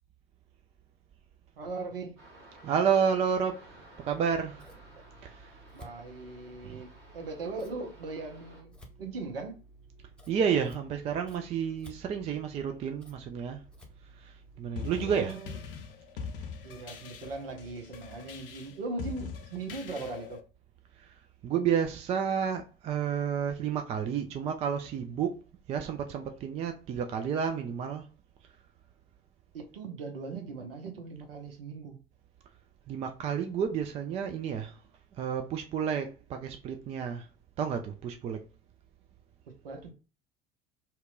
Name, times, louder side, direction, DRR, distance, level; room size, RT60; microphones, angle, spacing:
voice 1, 1.6-2.1 4.9-5.0 5.7-8.7 9.0-9.6 15.0-15.5 16.6-20.4 29.5-32.0 39.6-39.9, right 3 dB, 70° right, 0.7 m, -39 dB
sound 1, 2.2-8.6, right 1 dB, 40° right, 1.3 m, -55 dB
voice 2, 2.6-3.6 4.1-4.7 5.2-5.5 6.6-6.8 10.3-13.6 14.2-15.4 21.0-21.2 21.4-25.4 25.7-28.1 32.9-34.8 35.2-37.3 37.6-38.4, right 7 dB, 25° right, 0.3 m, -30 dB
Scissors, 4.1-14.8, right 1 dB, 5° left, 0.7 m, -55 dB
sound 2, 14.8-20.4, left 6 dB, 70° left, 0.5 m, -42 dB
2.8 x 2.2 x 3.7 m
figure-of-eight pair, 70°, 29 cm